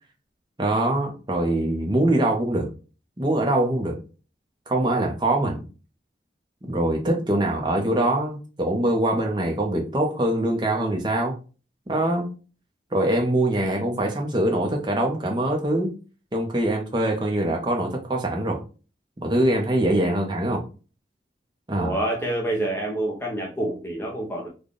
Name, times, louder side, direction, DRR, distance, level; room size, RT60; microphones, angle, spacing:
voice 1, 0.6-2.7 3.2-4.0 4.7-5.6 6.6-11.3 11.9-12.3 12.9-15.9 16.3-18.6 19.2-20.6 21.7-21.9, right 1 dB, 25° right, 0.7 m, -23 dB
voice 2, 21.8-24.5, right 1 dB, 15° left, 0.6 m, -27 dB
3.3 x 2.3 x 3.8 m
head